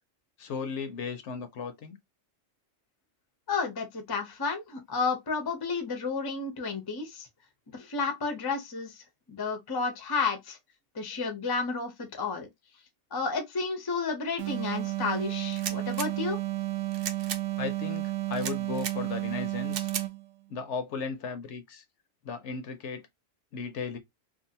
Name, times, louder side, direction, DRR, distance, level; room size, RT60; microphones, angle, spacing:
voice 1, 0.4-2.0 17.6-19.9 20.5-21.8 22.2-23.0 23.5-24.0, left 5 dB, 70° left, 0.9 m, -36 dB
voice 2, 3.5-7.3 7.7-9.0 9.3-10.6 10.9-12.5 13.1-16.4, left 4 dB, 30° left, 0.5 m, -31 dB
sound 1, 14.4-20.3, right 18 dB, 85° right, 1.0 m, -32 dB
sound 2, 15.5-16.1 16.9-17.4 18.3-19.0 19.7-20.1, right 7 dB, 60° right, 0.6 m, -36 dB
2.6 x 2.4 x 2.7 m
omnidirectional pair, 1.3 m